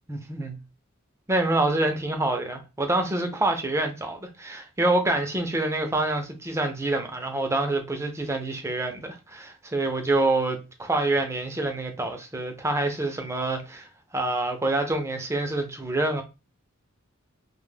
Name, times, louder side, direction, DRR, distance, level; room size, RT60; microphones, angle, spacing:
voice 1, 0.1-0.6 1.3-16.2, right 2 dB, 15° right, 0.4 m, -26 dB
2.1 x 2.0 x 3.2 m
head